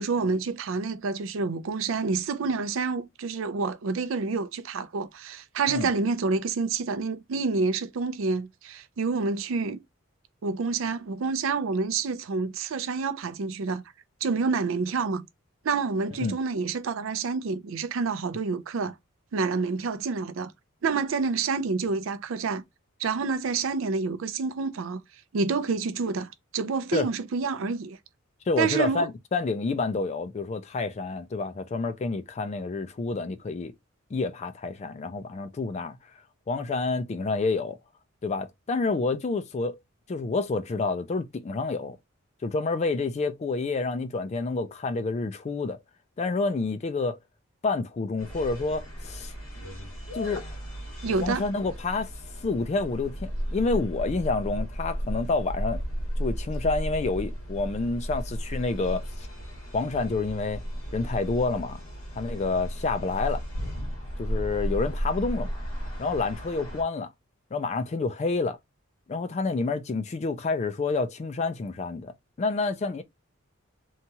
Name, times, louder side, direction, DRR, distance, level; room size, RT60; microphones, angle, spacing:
voice 1, 0.0-9.8 10.4-13.8 14.2-15.3 15.6-18.9 19.3-20.5 20.8-22.6 23.0-25.0 25.3-28.0 28.6-29.1 51.0-51.4, right 4 dB, 70° right, 0.4 m, -28 dB
voice 2, 28.5-33.7 34.1-36.0 36.5-37.8 38.2-39.8 40.1-42.0 42.4-45.8 46.2-47.2 47.6-49.3 50.1-50.5 51.2-52.1 52.4-55.8 56.2-59.3 59.7-60.6 60.9-61.8 62.2-63.4 64.2-65.5 66.0-67.1 67.5-68.6 69.1-73.0, left 3 dB, 35° left, 0.3 m, -28 dB
sound 1, 48.2-66.8, equal, 90° left, 1.3 m, -34 dB
2.8 x 2.3 x 2.7 m
head